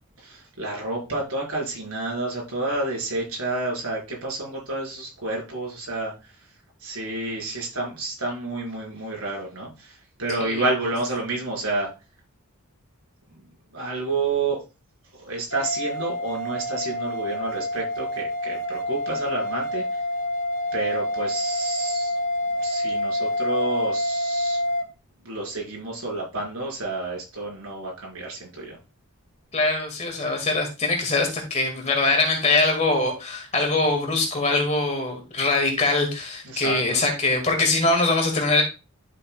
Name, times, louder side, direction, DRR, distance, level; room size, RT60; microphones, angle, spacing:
voice 1, 0.2-6.1 6.8-11.9 13.7-14.6 15.2-19.8 20.7-22.1 22.6-24.6 25.2-28.8 36.4-36.8, right 2 dB, 80° right, -2 dB, 4.9 m, -29 dB
sound 1, 15.5-24.8, left 1 dB, 65° left, 1.4 m, -27 dB
voice 2, 29.5-38.6, left 2 dB, 30° left, 3 dB, 2.1 m, -23 dB
11.5 x 6.4 x 2.4 m, 0.28 s
head